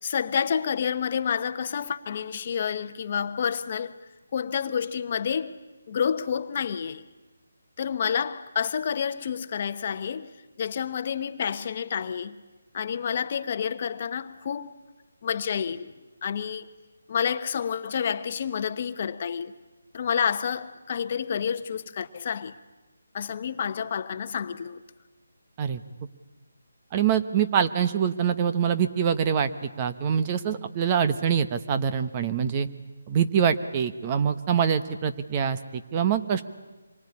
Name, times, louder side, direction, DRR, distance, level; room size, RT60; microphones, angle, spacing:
voice 1, 0.0-3.9 4.3-5.6 5.9-7.0 7.8-10.3 10.6-12.4 12.7-14.7 15.2-15.9 16.2-16.7 17.1-19.5 19.9-22.5 23.1-24.8, left 7 dB, 40° left, 1.1 m, -29 dB
voice 2, 26.9-32.7 33.1-36.4, right 8 dB, 25° right, 1.1 m, -25 dB
26.5 x 23.0 x 9.8 m
figure-of-eight pair, 160°, 0 cm